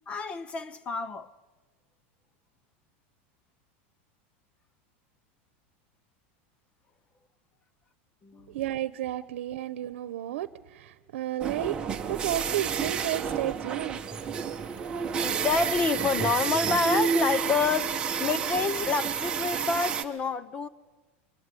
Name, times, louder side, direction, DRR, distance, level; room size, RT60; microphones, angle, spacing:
voice 1, 0.1-1.3 8.2-8.6 9.6-9.7 15.1-20.7, left 4 dB, 15° left, 0.8 m, -28 dB
voice 2, 8.5-11.8 12.1-14.0, right 13 dB, 85° right, 1.0 m, -32 dB
sound 1, 11.4-20.0, right 6 dB, 15° right, 1.2 m, -30 dB
24.5 x 23.0 x 9.9 m
supercardioid pair, 175°, 6 cm